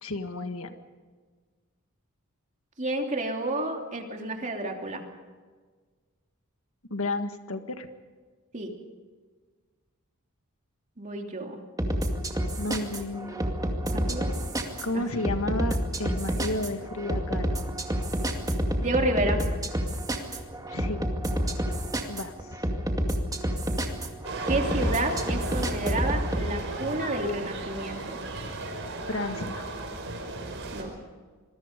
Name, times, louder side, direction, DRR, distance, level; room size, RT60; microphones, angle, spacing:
voice 1, 0.0-0.7 6.9-7.9 12.6-13.4 14.8-17.6 20.7-21.1 22.1-22.6 29.1-29.6, left 2 dB, 70° left, 7 dB, 1.7 m, -32 dB
voice 2, 2.8-5.0 8.5-8.7 11.0-11.6 13.9-14.3 14.9-15.2 18.8-19.4 24.5-28.2 30.7-31.0, right 1 dB, 35° right, 2 dB, 3.0 m, -30 dB
sound 1, 11.8-26.5, equal, 15° right, 2.3 m, -29 dB
sound 2, 24.2-30.8, right 2 dB, 60° right, 5.2 m, -35 dB
27.0 x 21.5 x 5.3 m, 1.5 s
head